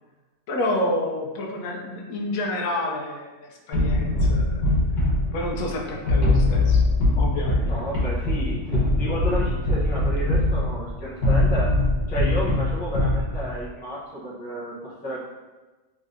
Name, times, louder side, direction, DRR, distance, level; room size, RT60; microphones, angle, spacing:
voice 1, 0.5-4.6 5.3-6.8 7.2-7.7, left 1 dB, 80° left, 0 dB, 1.1 m, -29 dB
sound 1, 3.7-13.7, left 2 dB, 60° left, 1.4 m, -22 dB
voice 2, 7.6-11.8 12.1-15.2, equal, 10° left, -7 dB, 0.4 m, -32 dB
3.7 x 3.1 x 2.5 m, 1.2 s
omnidirectional pair, 1.5 m